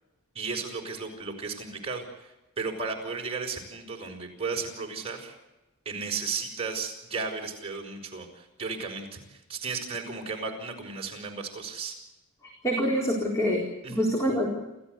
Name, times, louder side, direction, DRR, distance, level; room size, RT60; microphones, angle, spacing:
voice 1, 0.3-5.4 5.8-12.0 13.8-14.1, right 4 dB, 30° right, 0 dB, 5.9 m, -35 dB
voice 2, 12.6-14.5, equal, 15° left, -1 dB, 4.2 m, -26 dB
29.5 x 14.0 x 8.2 m, 1.0 s
head